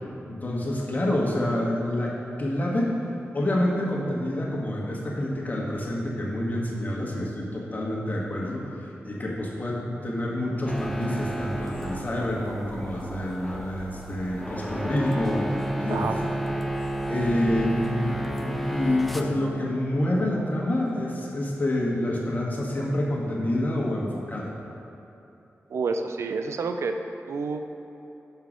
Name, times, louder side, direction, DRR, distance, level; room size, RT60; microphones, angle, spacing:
voice 1, 0.3-2.1 2.4-3.0 3.3-16.1 17.1-24.5, left 1 dB, 35° left, -3 dB, 1.4 m, -27 dB
sound 1, 10.7-19.2, right 1 dB, ahead, 0.6 m, -31 dB
voice 2, 15.9-16.2 25.7-27.0 27.3-27.6, right 4 dB, 75° right, 7 dB, 0.4 m, -28 dB
5.7 x 5.6 x 5.0 m, 2.9 s
cardioid pair, 55°, 5 cm